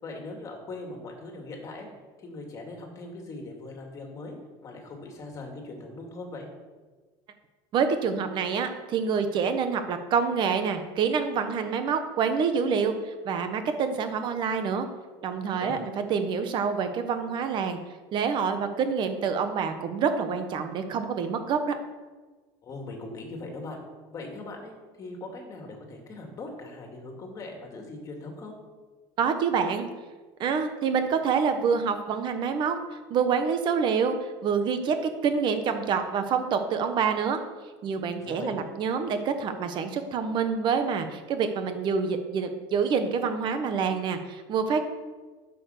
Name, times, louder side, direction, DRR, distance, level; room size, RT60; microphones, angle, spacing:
voice 1, 0.0-1.9 2.2-4.4 4.6-6.5 15.5-15.8 22.6-23.8 24.1-28.6 38.2-38.6, left 2 dB, 25° left, 2 dB, 2.4 m, -40 dB
voice 2, 7.7-14.9 15.2-15.8 16.1-17.8 18.1-21.7 29.2-29.9 30.4-32.8 33.1-37.4 37.8-44.9, right 6 dB, 40° right, 8 dB, 1.2 m, -27 dB
9.9 x 7.1 x 6.7 m, 1.4 s
cardioid pair, 160°, 12 cm